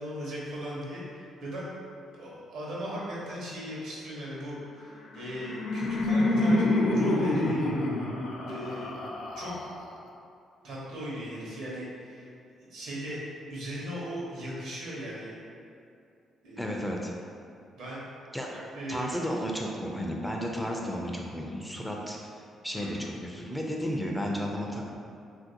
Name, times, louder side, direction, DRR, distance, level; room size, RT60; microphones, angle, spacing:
voice 1, 0.0-1.7 2.2-7.6 8.4-8.9 9.4-9.5 10.6-12.3 12.6-13.2 13.5-15.3 16.4-16.7 17.7-18.0 18.5-19.2 22.7-23.0, equal, 80° right, -6 dB, 0.9 m, -38 dB
Laughter, 5.0-10.1, left 1 dB, 75° left, 0.4 m, -27 dB
voice 2, 16.6-17.1 18.3-18.5 18.9-22.2 22.6-24.9, equal, ahead, -1 dB, 0.3 m, -33 dB
3.0 x 2.5 x 2.7 m, 2.5 s
cardioid pair, 90°, 0 cm